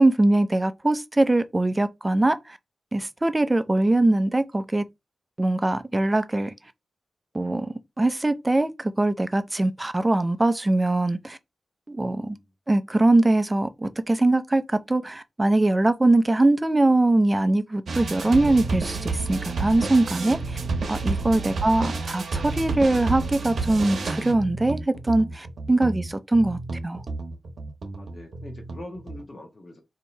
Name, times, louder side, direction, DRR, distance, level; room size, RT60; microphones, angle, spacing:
voice 1, 0.0-2.4 2.9-4.9 5.4-6.5 7.3-11.4 11.9-12.4 12.7-20.6 20.9-26.6 26.8-27.0, right 2 dB, 15° right, 0.4 m, -22 dB
voice 2, 12.0-12.5 21.3-21.7 27.9-29.8, left 1 dB, 35° left, 0.9 m, -44 dB
sound 1, 17.9-29.2, right 3 dB, 65° right, 0.8 m, -30 dB
2.9 x 2.7 x 4.3 m
wide cardioid pair, 145°, 0 cm